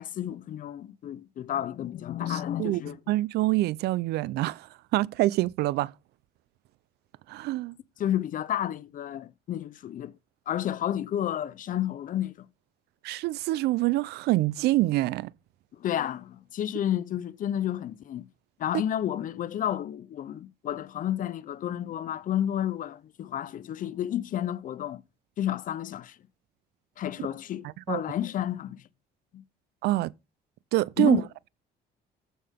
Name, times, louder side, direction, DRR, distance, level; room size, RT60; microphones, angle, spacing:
voice 1, 0.0-3.0 8.0-10.1 10.5-12.5 15.8-18.3 18.6-25.0 25.4-26.2 27.0-28.8 29.3-29.4 31.0-31.2, left 11 dB, 50° left, 0.7 m, -31 dB
voice 2, 2.3-2.8 3.1-4.7 4.9-5.9 7.3-7.8 13.0-15.3 27.9-28.0 29.8-30.1 30.7-31.2, right 17 dB, 80° right, 0.5 m, -25 dB
14.5 x 5.5 x 3.6 m
cardioid pair, 110°, 17 cm